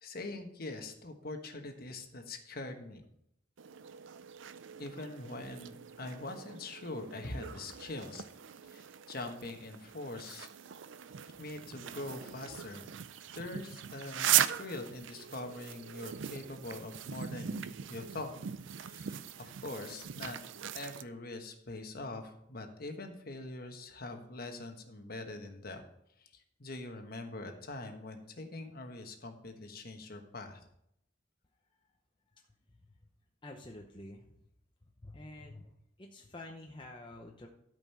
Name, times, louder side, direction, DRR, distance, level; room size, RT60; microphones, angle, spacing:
voice 1, 0.0-3.0 4.8-8.2 8.7-10.5 11.4-12.9 13.3-18.4 18.6-20.4 20.7-25.8 26.2-30.6, left 2 dB, 50° left, 5 dB, 1.2 m, -43 dB
sound 1, 3.6-21.0, right 10 dB, 75° right, 0.5 m, -39 dB
voice 2, 33.4-34.4 35.0-35.7 36.0-37.5, left 1 dB, 25° left, 1 dB, 0.8 m, -48 dB
12.5 x 5.3 x 5.6 m, 0.76 s
head